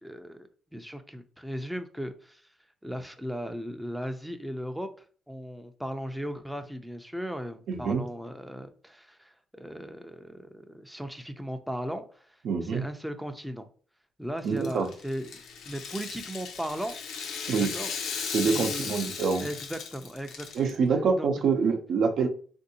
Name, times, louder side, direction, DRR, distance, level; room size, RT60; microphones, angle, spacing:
voice 1, 0.0-2.4 2.8-4.9 5.3-12.3 12.6-13.6 14.2-17.0 17.6-17.9 18.4-18.9 19.4-21.3, equal, 5° right, 8 dB, 0.4 m, -37 dB
voice 2, 7.7-8.0 12.4-12.8 14.4-14.9 17.5-17.7 18.3-19.5 20.5-22.3, right 5 dB, 70° right, 6 dB, 0.6 m, -26 dB
Rattle (instrument), 14.5-20.7, left 6 dB, 80° left, 0.6 m, -36 dB
3.6 x 2.6 x 2.7 m, 0.42 s
cardioid pair, 90°, 0 cm